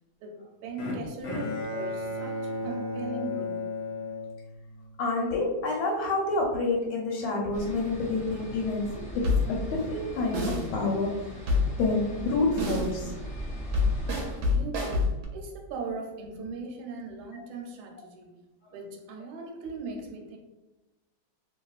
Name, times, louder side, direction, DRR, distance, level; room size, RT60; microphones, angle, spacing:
voice 1, 0.6-3.6 14.4-18.4 18.7-20.4, right 3 dB, 85° right, 2 dB, 1.4 m, -39 dB
Bowed string instrument, 0.8-5.0, left 2 dB, 70° left, 1.1 m, -34 dB
voice 2, 5.0-11.3 11.8-13.1 17.3-17.4, left 3 dB, 90° left, -3 dB, 1.4 m, -28 dB
sound 1, 7.5-14.4, equal, 5° left, 0.9 m, -40 dB
sound 2, 9.2-9.7 10.3-10.7 11.5-11.9 12.6-13.0 13.7-15.3, left 3 dB, 70° right, 1.0 m, -26 dB
2.9 x 2.8 x 2.3 m, 1.1 s
omnidirectional pair, 2.2 m